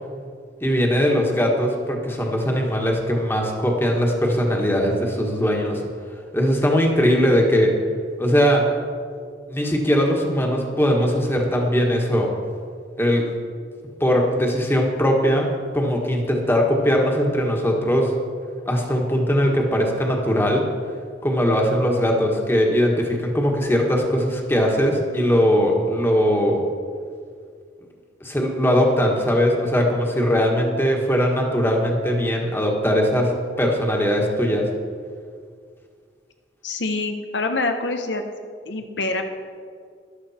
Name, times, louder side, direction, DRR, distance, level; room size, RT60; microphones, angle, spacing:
voice 1, 0.6-5.8 6.3-7.8 8.2-8.7 9.5-12.3 13.0-13.2 14.0-15.5 15.7-18.1 18.6-20.7 21.2-26.7 28.2-34.7, equal, 15° left, 1 dB, 1.6 m, -20 dB
voice 2, 36.6-38.2 38.7-39.2, left 3 dB, 85° left, 5 dB, 1.0 m, -25 dB
14.0 x 11.5 x 4.3 m, 2.1 s
head